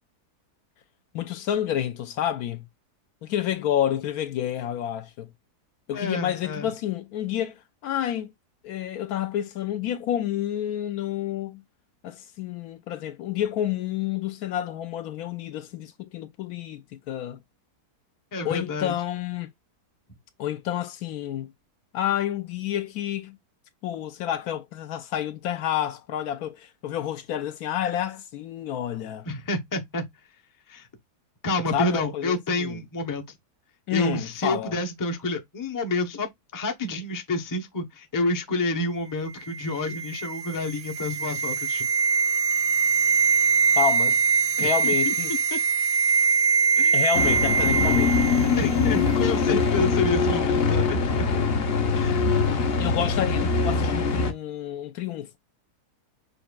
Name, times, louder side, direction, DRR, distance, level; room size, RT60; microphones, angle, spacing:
voice 1, 1.1-2.7 3.2-5.3 5.9-8.3 8.6-11.6 12.0-17.4 18.4-19.5 20.4-21.5 21.9-23.4 23.8-29.3 31.7-32.8 33.9-34.8 43.8-44.2 44.6-45.3 46.9-48.3 52.8-55.4, left 10 dB, 75° left, 1.0 m, -29 dB
voice 2, 5.9-6.7 18.3-19.0 29.2-30.0 30.7-30.9 31.4-33.2 33.9-41.9 44.6-45.1 45.5-45.6 46.8-47.0 48.6-51.0 51.9-52.3, left 2 dB, 20° left, 0.5 m, -29 dB
sound 1, 39.5-48.7 49.0-49.1, right 5 dB, 80° right, 1.2 m, -23 dB
sound 2, 47.1-54.3, left 4 dB, 50° left, 0.8 m, -23 dB
6.6 x 2.5 x 2.2 m
omnidirectional pair, 1.7 m